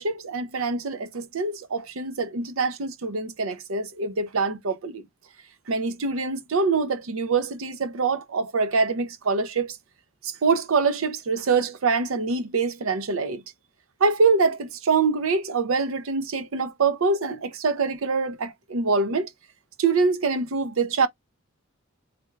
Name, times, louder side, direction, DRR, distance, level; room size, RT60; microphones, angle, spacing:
voice 1, 0.0-5.0 5.7-9.8 10.2-13.4 14.0-19.3 19.8-21.1, right 4 dB, 75° right, 0.6 m, -24 dB
3.4 x 2.2 x 3.3 m
head